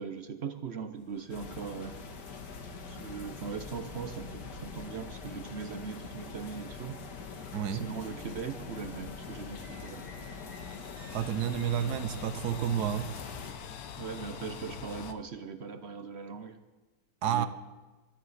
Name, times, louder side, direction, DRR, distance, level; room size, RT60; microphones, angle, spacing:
voice 1, 0.0-2.0 2.8-7.0 7.7-10.3 14.0-16.6 17.2-17.5, right 6 dB, 50° right, 8 dB, 0.8 m, -40 dB
sound 1, 1.0-15.1, left 8 dB, 65° left, 1.3 m, -48 dB
sound 2, 1.3-13.5, left 4 dB, 85° left, 1.9 m, -44 dB
voice 2, 7.5-7.9 11.1-13.1 17.2-17.5, right 9 dB, 75° right, 12 dB, 1.2 m, -30 dB
sound 3, 8.8-14.6, right 1 dB, 15° right, 5.1 m, -59 dB
21.5 x 12.5 x 4.1 m, 1.2 s
omnidirectional pair, 1.8 m